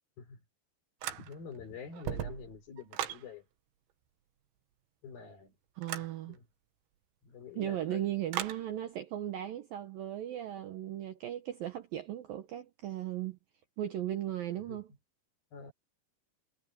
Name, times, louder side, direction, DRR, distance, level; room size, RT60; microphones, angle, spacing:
sound 1, 1.0-1.6 1.9-3.3 5.8-6.1 8.3-8.6, right 11 dB, 85° right, 3.9 m, -37 dB
voice 1, 1.1-3.5 5.0-5.5 6.0-6.4 7.2-8.2 14.7-14.8 15.5-15.7, left 6 dB, 55° left, 5.4 m, -47 dB
voice 2, 5.8-6.4 7.6-13.4 13.8-14.9, right 12 dB, 70° right, 2.3 m, -37 dB
omnidirectional pair, 5.3 m